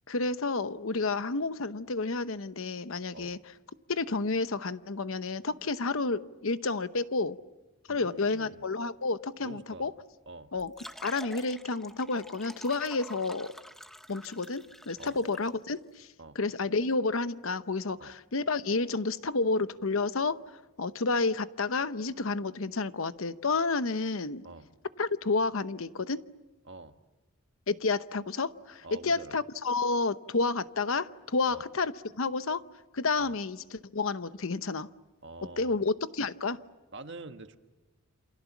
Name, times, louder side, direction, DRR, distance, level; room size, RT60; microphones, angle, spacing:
voice 1, 0.1-3.4 3.9-7.4 7.9-9.9 10.5-10.7 11.0-13.5 14.1-16.1 16.3-20.4 20.8-24.4 25.0-26.2 27.7-32.6 32.9-34.9 35.4-36.6, left 3 dB, 65° left, 13 dB, 0.9 m, -30 dB
voice 2, 7.9-8.6 9.4-9.9 10.3-10.5 15.0-15.2 16.2-16.4 18.0-18.1 24.4-24.7 26.6-27.0 28.8-29.4 31.5-31.6 33.2-33.4 35.2-35.8 36.9-37.6, right 3 dB, 55° right, 7 dB, 1.5 m, -46 dB
sound 1, 10.6-15.5, equal, ahead, 0.8 m, -48 dB
28.5 x 27.5 x 7.2 m, 1.1 s
head